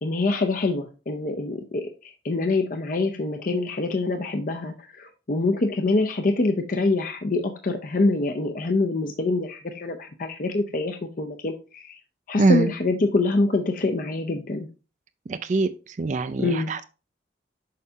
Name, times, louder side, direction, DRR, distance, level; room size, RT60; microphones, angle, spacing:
voice 1, 0.0-12.0 12.3-14.7 16.4-16.7, left 2 dB, 45° left, 0.6 m, -25 dB
voice 2, 12.4-12.7 15.3-16.8, right 3 dB, 40° right, 0.3 m, -23 dB
6.6 x 5.4 x 2.7 m
head